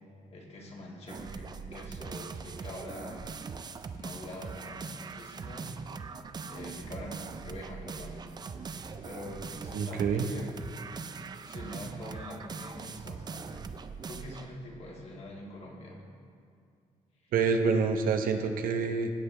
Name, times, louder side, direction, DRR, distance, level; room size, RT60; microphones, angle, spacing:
voice 1, 0.3-3.3 4.0-5.7 6.4-8.2 9.0-10.6 11.5-13.7 14.1-16.0 17.2-17.3, left 1 dB, 45° left, -2 dB, 1.7 m, -44 dB
sound 1, 1.1-14.5, right 5 dB, 30° right, 0.4 m, -41 dB
voice 2, 9.7-10.3 17.3-19.1, right 5 dB, 85° right, 5 dB, 0.8 m, -27 dB
16.0 x 8.1 x 3.2 m, 2.3 s
cardioid pair, 140°, 14 cm